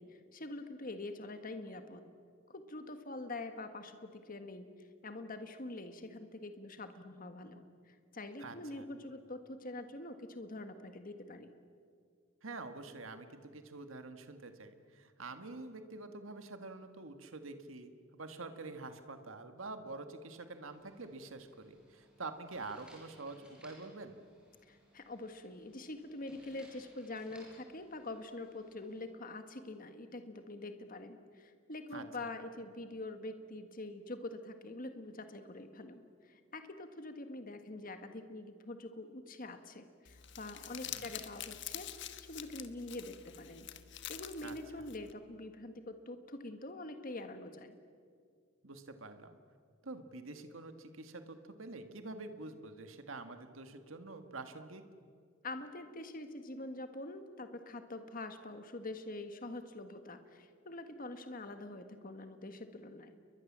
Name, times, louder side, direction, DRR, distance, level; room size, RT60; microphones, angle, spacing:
voice 1, 0.0-2.0 2.5-4.7 5.0-11.5 24.7-41.9 42.3-43.7 44.1-47.7 55.4-63.2, left 2 dB, 45° left, 8 dB, 1.6 m, -45 dB
voice 2, 8.4-8.8 12.4-24.2 31.9-32.0 40.8-41.1 44.4-44.5 48.6-49.4 49.8-54.8, right 3 dB, 75° right, 8 dB, 1.7 m, -47 dB
sound 1, 20.7-29.1, equal, 5° right, 6.9 m, -63 dB
Crumpling crinkling, 40.0-45.1, left 11 dB, 60° left, 1.3 m, -46 dB
29.5 x 22.5 x 7.4 m, 2.1 s
head